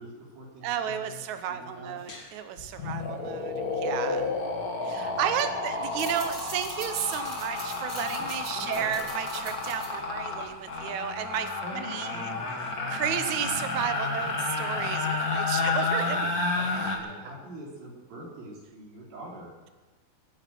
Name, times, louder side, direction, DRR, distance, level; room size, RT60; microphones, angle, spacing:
voice 1, 0.0-1.2 1.5-2.0 2.8-3.1 4.8-5.5 8.2-9.1 11.6-12.7 15.5-19.7, right 1 dB, 85° right, -3 dB, 5.3 m, -45 dB
voice 2, 0.6-4.3 4.8-12.3 12.9-16.3, right 9 dB, 65° right, 9 dB, 2.1 m, -33 dB
sound 1, 2.1-2.3 2.6-17.0, left 3 dB, 35° left, 1.7 m, -31 dB
sound 2, 6.0-11.0, right 2 dB, 35° right, 4.8 m, -43 dB
24.5 x 9.0 x 6.2 m, 1.2 s
omnidirectional pair, 4.1 m